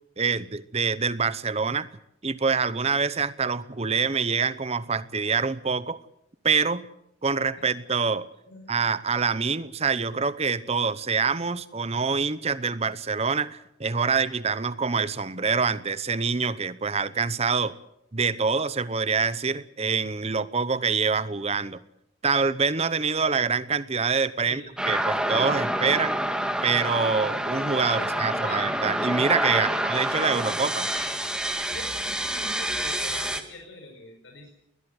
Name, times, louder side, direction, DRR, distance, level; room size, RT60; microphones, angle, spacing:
voice 1, 0.2-1.9 2.2-6.0 6.4-6.8 7.2-8.3 8.7-17.7 18.1-21.8 22.2-26.2 26.6-30.9, right 5 dB, 30° right, 15 dB, 0.9 m, -26 dB
sound 1, 24.8-33.4, right 1 dB, 5° right, 1.7 m, -27 dB
voice 2, 27.9-28.6 29.5-29.7 30.2-30.3 31.7-34.5, left 2 dB, 75° left, 2 dB, 5.0 m, -41 dB
20.5 x 19.5 x 8.0 m, 0.80 s
head